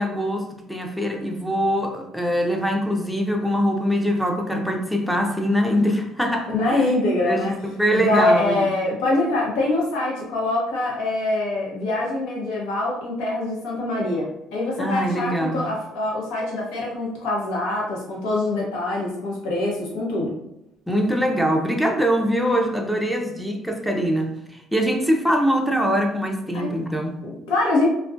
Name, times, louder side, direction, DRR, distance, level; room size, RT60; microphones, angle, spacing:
voice 1, 0.0-6.9 7.2-8.7 14.8-15.7 20.9-27.2, equal, ahead, 2 dB, 0.4 m, -23 dB
voice 2, 6.5-7.5 7.9-20.3 26.5-26.7 27.2-27.9, left 2 dB, 90° left, -3 dB, 0.8 m, -24 dB
2.4 x 2.1 x 2.4 m, 0.87 s
cardioid pair, 95°, 0 cm